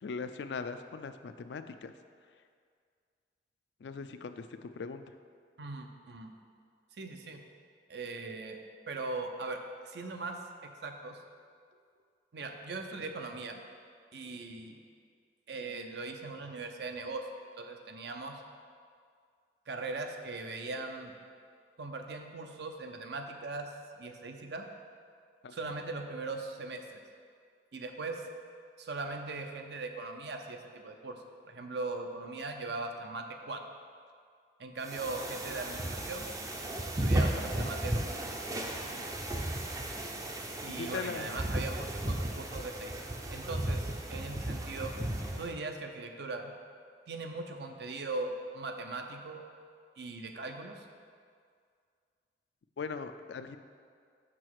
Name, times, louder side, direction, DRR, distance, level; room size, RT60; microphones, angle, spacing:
voice 1, 0.0-1.9 3.8-5.0 25.4-25.7 35.5-35.6 39.4-39.5 40.7-41.4 52.8-53.6, left 5 dB, 75° left, 9 dB, 0.4 m, -40 dB
voice 2, 5.6-6.4 6.9-7.4 7.9-8.6 8.9-11.2 12.3-13.6 14.1-14.8 15.5-17.3 17.6-18.4 19.7-21.1 21.8-24.7 25.5-27.0 27.7-28.2 28.8-33.6 34.6-36.3 36.9-38.2 40.6-42.9 43.2-44.9 45.4-46.5 47.1-49.5 50.0-50.9, right 3 dB, 65° right, 5 dB, 0.6 m, -40 dB
sound 1, 34.8-45.5, right 1 dB, 20° right, 0.4 m, -35 dB
6.3 x 6.1 x 4.7 m, 2.1 s
head